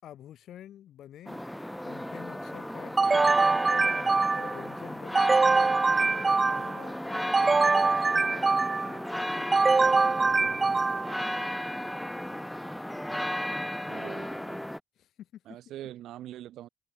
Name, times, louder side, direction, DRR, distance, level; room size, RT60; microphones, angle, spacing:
voice 1, 0.0-1.4 1.8-5.8 6.1-10.8 15.0-15.4, left 11 dB, 75° left, 6.2 m, -49 dB
sound 1, 1.3-14.8, left 1 dB, 5° left, 1.6 m, -35 dB
sound 2, 3.0-4.6 5.1-6.8 7.3-9.0 9.5-11.2, right 4 dB, 30° right, 0.6 m, -24 dB
voice 2, 13.9-14.7 15.4-16.7, right 13 dB, 80° right, 6.9 m, -43 dB
open air
cardioid pair, 90°, 0 cm